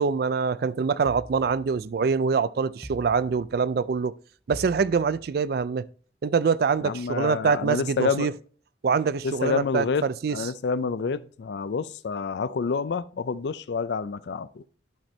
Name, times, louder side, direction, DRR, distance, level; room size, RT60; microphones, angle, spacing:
voice 1, 0.0-4.1 4.5-5.8 6.2-8.3 8.8-10.4, right 5 dB, 55° right, 0.3 m, -24 dB
sound 1, 1.0-2.2 2.8-3.9 4.5-5.6, equal, ahead, 0.7 m, -44 dB
voice 2, 6.8-8.3 9.2-10.0 10.3-14.6, left 5 dB, 65° left, 0.4 m, -28 dB
11.5 x 4.4 x 3.2 m
head